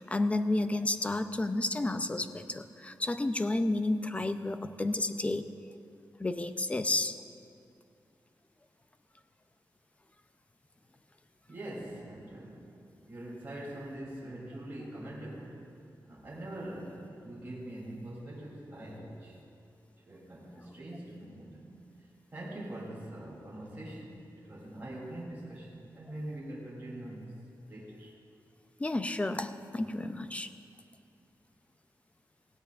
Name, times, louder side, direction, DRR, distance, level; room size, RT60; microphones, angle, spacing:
voice 1, 0.0-5.5 6.2-7.1 28.8-30.5, left 2 dB, 20° left, 9 dB, 0.5 m, -31 dB
voice 2, 11.5-12.7 13.0-15.6 16.0-19.4 20.0-21.6 22.3-27.3 27.7-28.1, right 1 dB, 25° right, -7 dB, 3.1 m, -43 dB
17.5 x 17.0 x 2.5 m, 2.4 s
wide cardioid pair, 150°, 7 cm